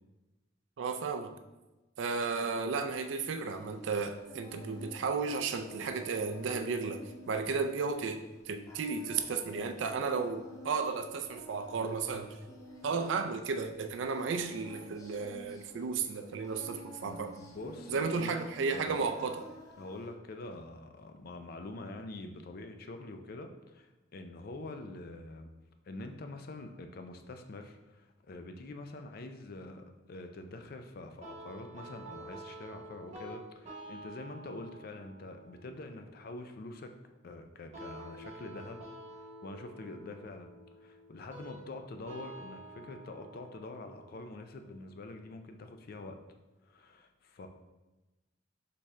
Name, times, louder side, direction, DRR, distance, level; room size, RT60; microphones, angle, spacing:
voice 1, 0.8-1.3 2.0-12.4 12.8-17.3 17.9-19.5, right 4 dB, 75° right, 7 dB, 0.4 m, -34 dB
Singing, 3.4-20.1, equal, 15° left, 0.7 m, -51 dB
voice 2, 17.0-18.4 18.7-19.0 19.8-25.5 25.9-36.9 37.2-38.8 39.1-40.5 40.8-46.2 46.6-47.5, left 2 dB, 50° left, 6 dB, 0.4 m, -45 dB
sound 1, 31.2-46.2, right 2 dB, 35° right, 0.8 m, -50 dB
4.1 x 3.5 x 3.2 m, 1.1 s
head